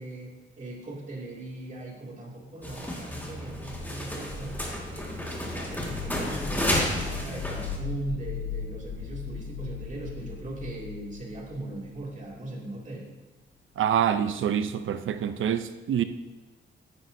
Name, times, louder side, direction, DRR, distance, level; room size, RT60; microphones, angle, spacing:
voice 1, 0.0-4.6 4.9-13.1, right 2 dB, 40° right, -2 dB, 2.4 m, -39 dB
sound 1, 2.6-7.8, left 1 dB, 10° left, 1.9 m, -32 dB
sound 2, 5.7-12.4, left 6 dB, 65° left, 0.4 m, -37 dB
voice 2, 13.8-16.0, right 9 dB, 85° right, 10 dB, 0.6 m, -26 dB
13.5 x 10.0 x 2.7 m, 1.1 s
wide cardioid pair, 135°, 20 cm